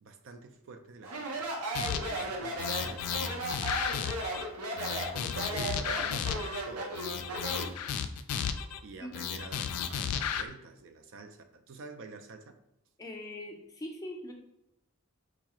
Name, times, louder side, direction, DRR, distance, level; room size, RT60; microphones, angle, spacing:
voice 1, 0.0-1.5 2.0-3.9 5.1-7.9 8.8-12.6, right 4 dB, 60° right, 7 dB, 0.4 m, -48 dB
Speech, 1.0-7.8, right 2 dB, 90° right, 0.8 m, -36 dB
sound 1, 1.7-2.2 2.6-4.4 4.8-6.6 6.9-8.8 9.1-10.4, left 8 dB, 85° left, 0.3 m, -33 dB
voice 2, 13.0-14.3, left 1 dB, 15° left, 1 dB, 0.5 m, -41 dB
4.7 x 2.4 x 2.9 m, 0.84 s
head